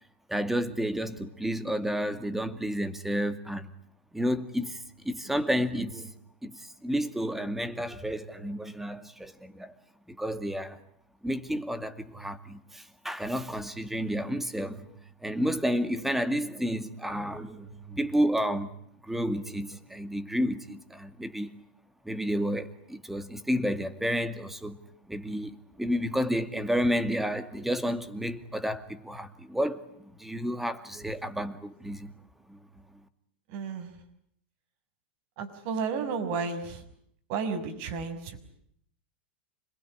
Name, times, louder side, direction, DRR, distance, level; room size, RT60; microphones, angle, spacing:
voice 1, 0.3-3.7 4.1-6.1 6.4-9.7 10.1-10.8 11.2-14.9 15.2-18.7 19.1-21.5 22.1-24.8 25.1-29.8 30.2-32.1 32.5-32.6, equal, 5° right, 2.3 m, -31 dB
voice 2, 33.5-34.0 35.4-36.8 37.3-38.4, right 5 dB, 55° right, 6.1 m, -32 dB
26.5 x 21.5 x 10.0 m
hypercardioid pair, 115°, 6 cm